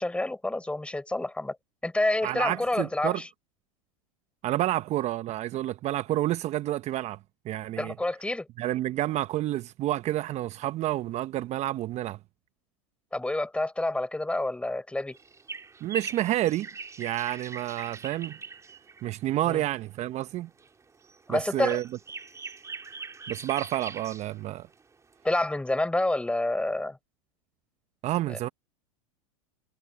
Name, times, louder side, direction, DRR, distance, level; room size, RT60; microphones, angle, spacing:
voice 1, 0.0-1.6 1.8-3.3 7.8-8.5 13.1-15.2 19.5-19.6 21.3-21.8 25.2-27.0 28.3-28.4, left 2 dB, 5° left, 4.5 m, -28 dB
voice 2, 2.2-3.2 4.4-7.2 7.4-7.9 8.6-12.2 15.8-16.7 17.0-18.4 19.0-20.5 21.3-21.8 23.3-24.7 28.0-28.5, right 14 dB, 40° right, 0.9 m, -29 dB
sound 1, 15.1-19.2 20.4-20.7 21.0-24.5 24.7-24.8 25.1-25.2, right 4 dB, 15° right, 3.6 m, -41 dB
hypercardioid pair, 100°, 18 cm